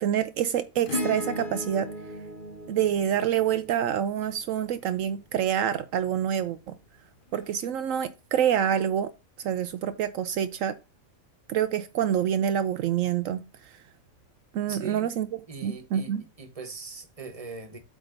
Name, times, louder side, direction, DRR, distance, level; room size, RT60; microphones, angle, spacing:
voice 1, 0.0-1.9 2.7-6.8 7.3-9.1 9.4-10.7 11.5-13.8 14.5-15.3 15.6-16.2, right 9 dB, 75° right, 1.0 m, -27 dB
Acoustic guitar / Strum, 0.9-5.5 7.3-7.4, left 1 dB, 40° left, 1.1 m, -37 dB
voice 2, 14.7-15.1 15.5-17.8, right 4 dB, 25° right, 1.3 m, -40 dB
8.1 x 3.7 x 5.2 m
omnidirectional pair, 1.4 m